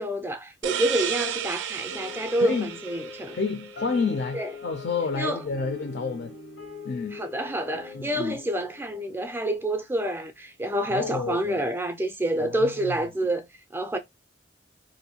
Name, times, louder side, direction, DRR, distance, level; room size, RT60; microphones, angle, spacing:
voice 1, 0.0-3.4 4.3-4.5 5.1-5.4 7.1-13.5 13.7-14.0, right 1 dB, 10° right, 0.4 m, -28 dB
sound 1, 0.6-4.1, right 9 dB, 80° right, 0.4 m, -33 dB
sound 2, 1.9-10.4, left 5 dB, 85° left, 0.8 m, -43 dB
voice 2, 2.4-2.7 3.3-6.4 6.8-7.2 7.9-8.4 10.9-11.6 12.4-12.9, left 4 dB, 60° left, 0.4 m, -30 dB
2.6 x 2.2 x 2.7 m
head